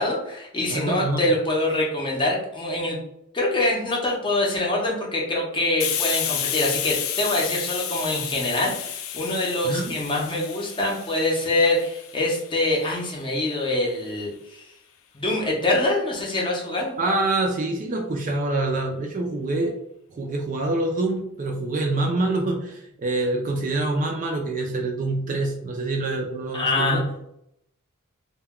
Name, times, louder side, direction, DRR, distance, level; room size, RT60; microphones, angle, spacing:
voice 1, 0.0-3.0 3.3-14.6 15.1-17.0 26.5-27.0, left 2 dB, 20° left, -2 dB, 0.6 m, -24 dB
voice 2, 0.7-1.2 9.6-10.0 17.0-19.7 20.1-27.1, right 2 dB, 35° right, 1 dB, 0.3 m, -26 dB
Hiss, 5.8-13.2, left 9 dB, 65° left, 0.3 m, -31 dB
2.2 x 2.2 x 3.5 m, 0.77 s
head